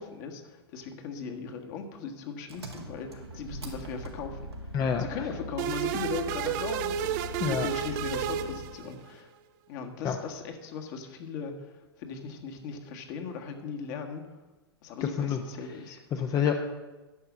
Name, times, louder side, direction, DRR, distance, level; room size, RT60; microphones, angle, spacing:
voice 1, 0.0-9.3 9.7-14.2 14.8-16.0, left 5 dB, 50° left, 4 dB, 1.6 m, -38 dB
Engine, 2.5-8.8, equal, 85° right, 1.8 m, -41 dB
voice 2, 4.7-5.1 7.4-7.7 10.0-10.1 15.2-15.4 16.1-16.5, left 8 dB, 25° left, 4 dB, 0.7 m, -27 dB
sound 1, 5.6-9.2, right 10 dB, 45° right, 0.6 m, -32 dB
11.0 x 6.8 x 6.0 m, 1.2 s
figure-of-eight pair, 100°, 13 cm